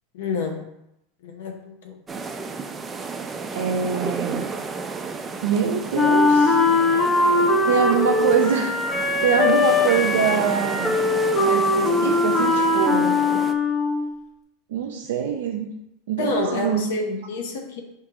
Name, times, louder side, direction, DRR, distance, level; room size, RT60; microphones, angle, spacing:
voice 1, 0.1-0.7 1.2-2.0 16.2-17.8, left 3 dB, 75° left, 3 dB, 0.6 m, -28 dB
sound 1, 2.1-13.5, right 4 dB, 20° right, 0.4 m, -32 dB
voice 2, 3.5-4.5 5.4-6.6 7.6-8.8 9.2-11.0 11.4-13.2 14.7-15.7 16.1-16.9, right 7 dB, 80° right, 1 dB, 0.4 m, -24 dB
Wind instrument woodwind instrument, 5.9-14.1, left 3 dB, 30° left, 0.9 m, -20 dB
4.8 x 2.8 x 3.5 m, 0.84 s
supercardioid pair, 115°, 0 cm